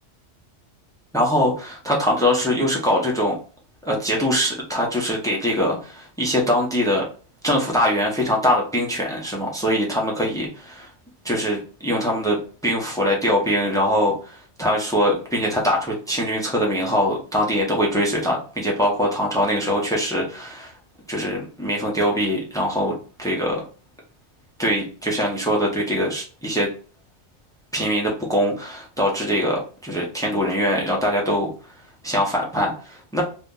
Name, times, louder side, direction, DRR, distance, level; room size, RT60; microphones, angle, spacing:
voice 1, 1.1-3.4 3.8-7.0 7.4-10.9 11.2-12.4 12.6-20.7 21.1-23.6 24.6-26.7 27.7-31.5 32.0-33.2, equal, 5° left, -1 dB, 0.8 m, -22 dB
2.9 x 2.5 x 3.7 m, 0.38 s
omnidirectional pair, 1.2 m